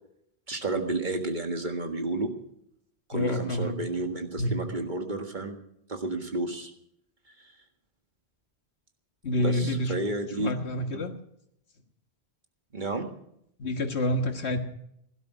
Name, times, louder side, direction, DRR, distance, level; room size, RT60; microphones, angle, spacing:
voice 1, 0.5-2.3 3.1-5.6 5.9-6.7 9.4-10.5 12.7-13.1, right 2 dB, 45° right, 5 dB, 1.9 m, -31 dB
voice 2, 3.1-3.8 4.4-4.6 9.2-11.1 13.6-14.6, left 1 dB, 85° left, 7 dB, 1.8 m, -28 dB
16.5 x 12.0 x 6.0 m, 0.74 s
omnidirectional pair, 1.1 m